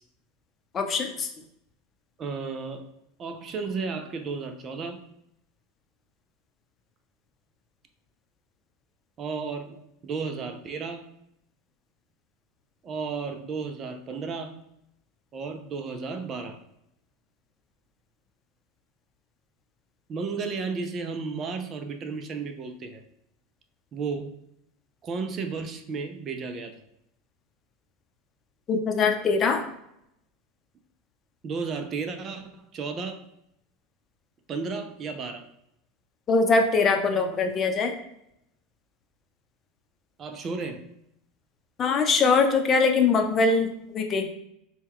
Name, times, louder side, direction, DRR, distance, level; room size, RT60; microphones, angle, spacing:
voice 1, 0.7-1.3 28.7-29.7 36.3-37.9 41.8-44.3, left 4 dB, 35° left, 5 dB, 0.7 m, -22 dB
voice 2, 2.2-2.8 3.2-5.0 9.2-9.8 10.0-11.0 12.8-14.6 15.3-16.6 20.1-23.0 23.9-24.3 25.0-26.8 31.4-33.2 34.5-35.5 40.2-40.9, right 4 dB, 35° right, 7 dB, 0.5 m, -33 dB
4.2 x 2.3 x 3.6 m, 0.77 s
hypercardioid pair, 90°, 0 cm